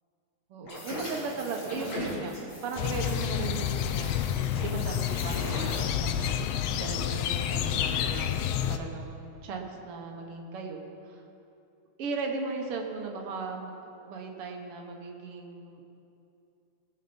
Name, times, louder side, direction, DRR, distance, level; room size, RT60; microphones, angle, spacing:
voice 1, 0.5-2.3 2.6-11.2 12.0-13.8 14.1-16.0, right 4 dB, 60° right, 2 dB, 1.8 m, -37 dB
sound 1, 0.6-5.8, left 1 dB, 60° left, 3.9 m, -40 dB
sound 2, 2.8-8.8, left 9 dB, 90° left, 1.4 m, -29 dB
19.0 x 7.0 x 5.3 m, 2.8 s
omnidirectional pair, 3.4 m